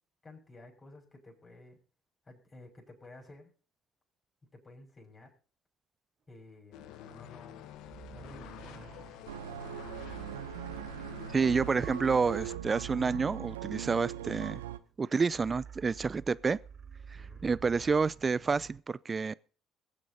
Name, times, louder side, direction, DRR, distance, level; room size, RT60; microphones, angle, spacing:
voice 1, 0.2-1.8 2.2-3.5 4.5-5.3 6.3-7.7 8.1-9.1 17.1-17.5, left 2 dB, 30° left, 6.3 m, -53 dB
sound 1, 6.7-12.6, left 11 dB, 70° left, 1.0 m, -49 dB
sound 2, 7.8-18.8, right 8 dB, 50° right, 1.1 m, -50 dB
sound 3, 9.3-14.8, right 11 dB, 85° right, 0.7 m, -40 dB
voice 2, 11.3-14.6 15.0-16.6 17.1-19.3, right 5 dB, 30° right, 0.5 m, -29 dB
22.0 x 8.5 x 4.1 m
hypercardioid pair, 55°, 0 cm